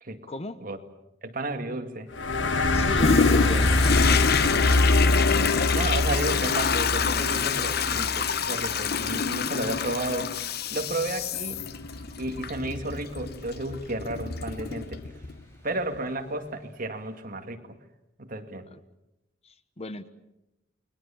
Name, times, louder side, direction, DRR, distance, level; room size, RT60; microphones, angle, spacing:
voice 1, 0.3-0.6 2.7-4.1 18.7-18.8 19.4-20.1, left 2 dB, 35° left, 12 dB, 1.1 m, -36 dB
voice 2, 1.2-2.1 5.7-10.3 10.7-11.6 12.2-15.0 15.6-17.6 18.2-18.7, right 2 dB, 50° right, 5 dB, 2.2 m, -32 dB
sound 1, 2.1-9.2, left 2 dB, 75° left, 1.5 m, -24 dB
Toilet flush, 3.0-15.4 15.9-16.0, left 6 dB, 60° left, 1.0 m, -27 dB
Thunder / Rain, 3.1-16.6, equal, 15° left, 7.6 m, -47 dB
29.5 x 21.5 x 7.2 m, 0.91 s
head